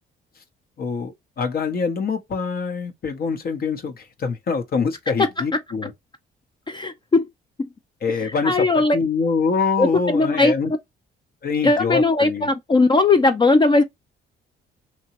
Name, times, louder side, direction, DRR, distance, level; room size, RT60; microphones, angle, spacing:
voice 1, 0.8-5.9 8.0-10.7 11.4-12.5, left 5 dB, 50° left, 0.8 m, -24 dB
voice 2, 6.7-7.3 7.6-7.7 8.4-9.0 9.8-10.5 11.6-13.8, left 3 dB, 25° left, 0.4 m, -18 dB
2.8 x 2.2 x 2.9 m
cardioid pair, 90°, 20 cm